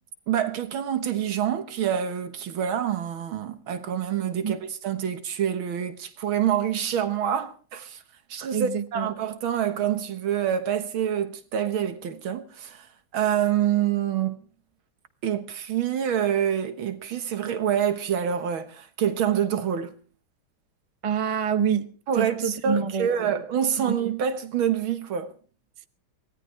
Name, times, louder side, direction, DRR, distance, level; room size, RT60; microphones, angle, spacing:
voice 1, 0.3-4.6 4.8-8.0 8.3-12.9 13.1-14.4 15.2-19.9 22.1-25.3, right 9 dB, 90° right, 2.2 m, -26 dB
voice 2, 8.5-9.1 21.0-21.9 22.2-23.4 23.8-24.0, right 7 dB, 45° right, 0.4 m, -27 dB
23.5 x 17.5 x 3.3 m
omnidirectional pair, 2.2 m